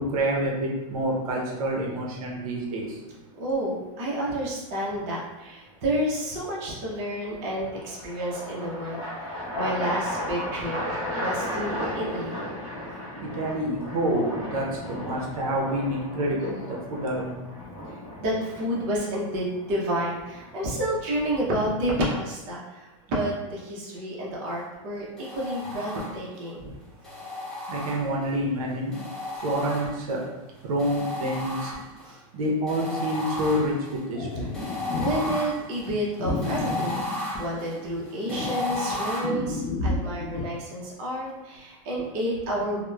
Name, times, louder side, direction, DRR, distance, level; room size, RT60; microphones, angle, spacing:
voice 1, 0.0-3.0 13.2-17.4 27.7-29.0 29.4-30.2 30.6-31.7 32.3-34.5, right 1 dB, 75° right, -1 dB, 0.6 m, -27 dB
sound 1, 2.6-3.1 6.9-21.5, left 1 dB, 20° right, 1.0 m, -35 dB
voice 2, 3.4-10.8 11.2-12.4 18.2-26.7 32.0-32.2 35.0-42.8, right 1 dB, 35° right, -5 dB, 0.6 m, -30 dB
sound 2, 25.2-26.4 27.0-28.4 28.9-30.2 30.8-32.1 32.7-39.2, left 1 dB, 5° left, 0.3 m, -34 dB
sound 3, 34.1-35.3 36.2-37.7 38.2-40.4, left 2 dB, 85° left, 0.8 m, -31 dB
2.8 x 2.0 x 2.2 m, 1.1 s
supercardioid pair, 165°, 18 cm